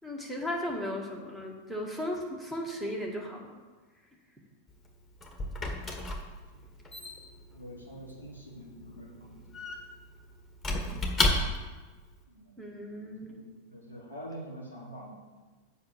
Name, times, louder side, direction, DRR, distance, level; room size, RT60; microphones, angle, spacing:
voice 1, 0.0-3.6 12.6-13.4, left 1 dB, 5° right, -1 dB, 1.9 m, -36 dB
Squeak / Wood, 4.7-11.9, left 2 dB, 15° left, 1.5 m, -33 dB
voice 2, 7.5-9.6 12.3-13.4 13.7-15.2, equal, 90° right, -6 dB, 3.2 m, -46 dB
7.7 x 5.6 x 7.4 m, 1.3 s
figure-of-eight pair, 90°, 0 cm